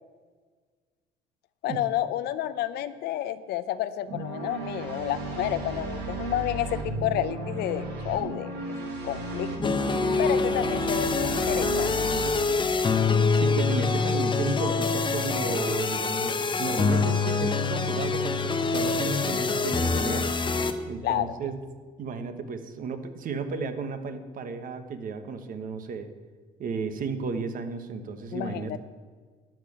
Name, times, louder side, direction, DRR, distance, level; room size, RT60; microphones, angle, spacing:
voice 1, 1.6-8.5 9.0-9.7 10.2-12.0 21.0-21.4 28.3-28.8, left 12 dB, 75° left, 13 dB, 0.8 m, -30 dB
sound 1, 4.1-12.3, right 2 dB, 75° right, 2.7 m, -34 dB
sound 2, 9.6-20.7, left 4 dB, 30° left, 1.0 m, -25 dB
voice 2, 13.3-20.3 20.9-21.6 22.0-26.1 26.6-28.8, right 4 dB, 55° right, 9 dB, 1.3 m, -33 dB
12.5 x 6.7 x 8.7 m, 1.5 s
cardioid pair, 110°, 17 cm